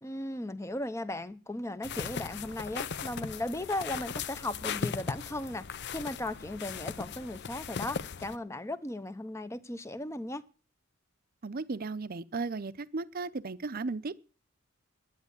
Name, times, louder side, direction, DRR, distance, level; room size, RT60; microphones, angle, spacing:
voice 1, 0.0-5.6 5.9-10.4, left 1 dB, 15° left, 0.7 m, -36 dB
sound 1, 1.8-8.4, left 6 dB, 55° left, 0.6 m, -38 dB
voice 2, 11.4-14.2, right 3 dB, 45° right, 0.6 m, -35 dB
10.5 x 9.5 x 8.3 m
head